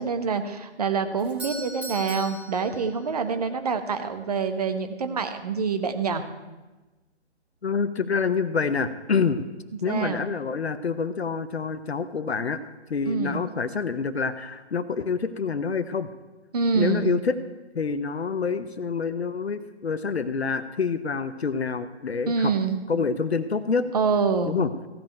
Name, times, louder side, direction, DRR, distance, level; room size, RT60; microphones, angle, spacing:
voice 1, 0.0-6.2 9.9-10.2 13.1-13.4 16.5-17.1 22.3-22.8 23.9-24.6, right 5 dB, 35° right, 9 dB, 1.0 m, -26 dB
Doorbell, 1.2-3.3, equal, 5° right, 1.3 m, -39 dB
voice 2, 7.6-9.4 9.8-12.6 12.9-16.1 16.7-17.4 17.7-22.5 22.9-23.9 24.5-24.7, left 5 dB, 65° left, 11 dB, 0.9 m, -27 dB
15.5 x 5.3 x 9.1 m, 1.1 s
figure-of-eight pair, 150°, 34 cm